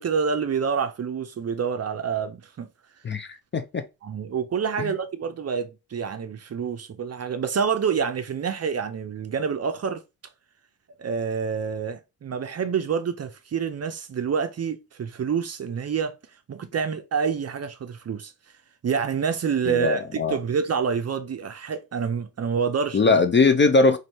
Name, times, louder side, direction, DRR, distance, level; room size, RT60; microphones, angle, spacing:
voice 1, 0.0-2.7 4.0-10.0 11.0-16.1 16.5-18.3 18.8-23.0, right 6 dB, 35° right, 0.5 m, -27 dB
voice 2, 3.0-3.8 4.8-4.9 19.7-20.4 22.9-24.0, left 3 dB, 25° left, 0.4 m, -20 dB
3.1 x 2.6 x 4.1 m
cardioid pair, 85°, 44 cm